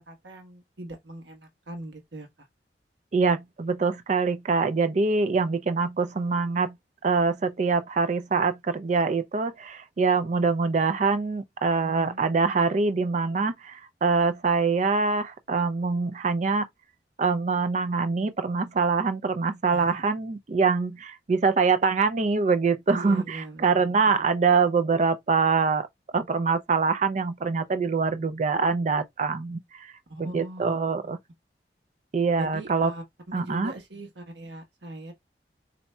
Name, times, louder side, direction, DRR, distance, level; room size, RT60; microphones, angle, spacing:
voice 1, 0.0-2.5 11.8-12.3 19.7-20.0 22.9-24.2 30.1-30.8 32.4-35.1, right 1 dB, 80° right, 1.2 m, -40 dB
voice 2, 3.1-6.8 7.0-16.7 17.2-25.9 26.1-29.9 30.2-31.2 32.1-32.9 33.3-33.7, right 4 dB, 40° right, 0.4 m, -24 dB
4.2 x 2.7 x 2.2 m
head